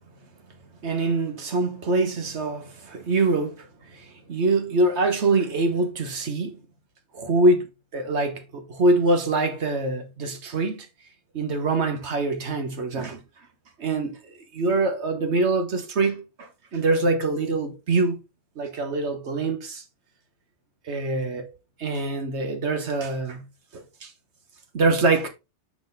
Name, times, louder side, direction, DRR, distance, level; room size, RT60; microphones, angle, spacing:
voice 1, 0.8-6.6 7.1-10.9 11.3-13.2 13.8-18.2 18.6-19.8 20.8-21.5 21.8-23.5 23.7-24.1 24.7-25.3, right 2 dB, 65° right, 1.4 m, -24 dB
6.0 x 4.9 x 3.5 m
omnidirectional pair, 1.3 m